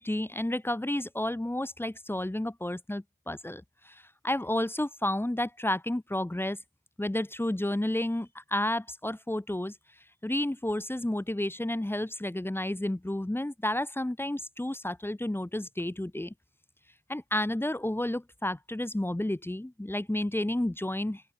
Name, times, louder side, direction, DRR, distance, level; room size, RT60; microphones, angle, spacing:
voice 1, 0.0-6.6 7.0-9.7 10.2-16.3 17.1-21.2, left 1 dB, 5° left, 4.0 m, -31 dB
open air
cardioid pair, 90°, 30 cm